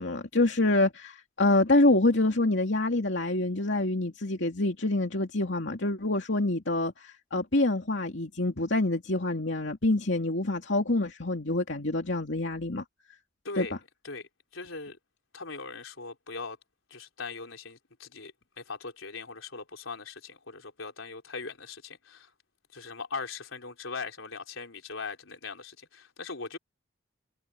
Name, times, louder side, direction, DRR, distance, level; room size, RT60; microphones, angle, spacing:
voice 1, 0.0-12.8 13.6-13.7, left 2 dB, 65° left, 2.6 m, -26 dB
voice 2, 14.0-15.0 15.3-16.6 16.9-22.3 22.7-26.6, left 4 dB, 90° left, 4.2 m, -40 dB
head